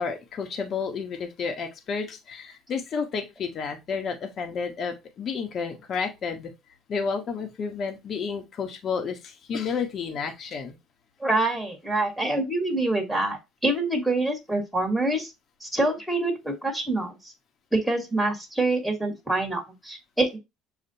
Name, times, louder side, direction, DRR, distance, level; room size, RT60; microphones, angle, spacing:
voice 1, 0.0-6.5 6.9-10.8, left 5 dB, 50° left, 5 dB, 1.1 m, -31 dB
voice 2, 11.2-15.3 15.6-17.3 17.7-20.4, right 2 dB, ahead, 1 dB, 1.7 m, -26 dB
6.9 x 2.5 x 2.7 m, 0.23 s
supercardioid pair, 95°, 0 cm